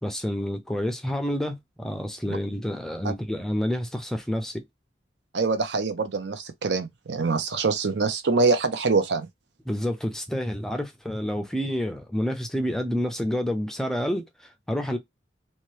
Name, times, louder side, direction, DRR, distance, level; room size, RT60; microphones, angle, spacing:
voice 1, 0.0-4.6 9.7-15.0, equal, 5° left, 0.4 m, -29 dB
voice 2, 5.3-9.3, right 4 dB, 75° right, 0.6 m, -24 dB
2.8 x 2.2 x 3.0 m
head